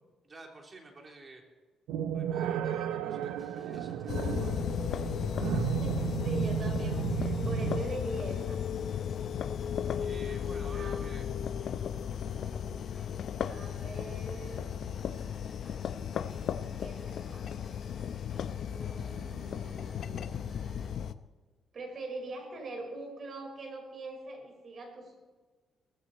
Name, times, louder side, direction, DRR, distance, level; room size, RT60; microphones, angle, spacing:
voice 1, 0.2-1.4 2.1-4.7 10.0-11.3, right 3 dB, 35° right, 1 dB, 3.5 m, -50 dB
sound 1, 1.9-7.8, right 9 dB, 90° right, 0.6 m, -33 dB
sound 2, 3.2-20.9, left 1 dB, 5° left, 4.8 m, -58 dB
sound 3, 4.1-21.1, left 8 dB, 65° left, 0.7 m, -35 dB
voice 2, 5.6-8.6 10.7-11.5 13.5-14.7 16.8-17.6 18.7-20.3 21.7-25.2, right 2 dB, 50° right, 3 dB, 5.1 m, -42 dB
18.5 x 15.0 x 4.3 m, 1.4 s
cardioid pair, 90°, 0 cm